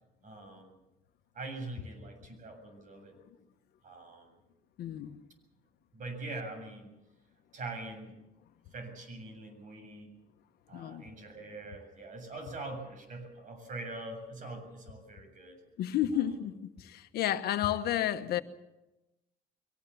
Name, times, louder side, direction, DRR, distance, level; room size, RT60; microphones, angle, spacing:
voice 1, 0.2-0.7 1.3-3.2 3.8-4.4 5.9-6.9 7.5-8.1 8.7-10.1 10.7-15.6, right 2 dB, 50° right, 7.5 m, -43 dB
voice 2, 4.8-5.2 10.7-11.1 15.8-18.4, left 11 dB, 70° left, 1.3 m, -31 dB
22.5 x 19.0 x 7.1 m
cardioid pair, 110°, 17 cm